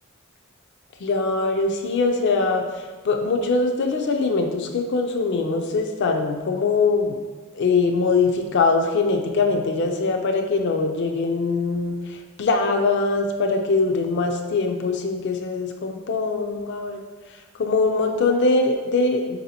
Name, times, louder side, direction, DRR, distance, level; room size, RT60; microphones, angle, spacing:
voice 1, 1.0-7.2 7.5-17.0 17.6-19.4, left 3 dB, 55° left, 3 dB, 0.4 m, -22 dB
4.7 x 2.7 x 4.1 m, 1.4 s
head